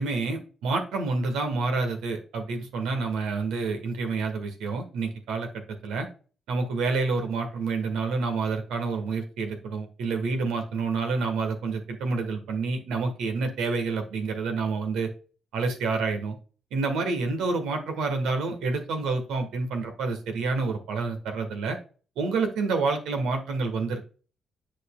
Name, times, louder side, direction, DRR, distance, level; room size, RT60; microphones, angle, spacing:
voice 1, 0.0-6.1 6.5-15.1 15.5-16.4 16.7-21.8 22.2-24.0, right 4 dB, 75° right, 5 dB, 1.4 m, -28 dB
9.8 x 5.0 x 2.3 m, 0.38 s
hypercardioid pair, 40°, 0 cm